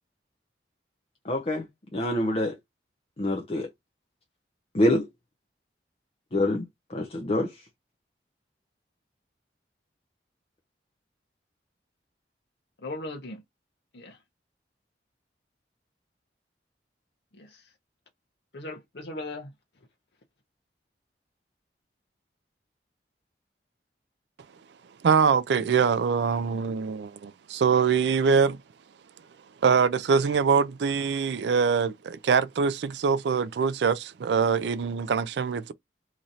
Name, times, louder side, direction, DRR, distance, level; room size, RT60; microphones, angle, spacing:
voice 1, 1.3-1.7 1.9-2.6 3.2-3.7 4.7-5.0 6.3-6.6 6.9-7.5, left 1 dB, 35° left, 0.6 m, -25 dB
voice 2, 12.8-13.4 13.9-14.2 17.3-17.7 18.5-19.5, left 2 dB, 70° left, 0.8 m, -38 dB
voice 3, 25.0-28.6 29.6-35.7, right 6 dB, 75° right, 0.4 m, -23 dB
3.0 x 2.6 x 4.0 m
head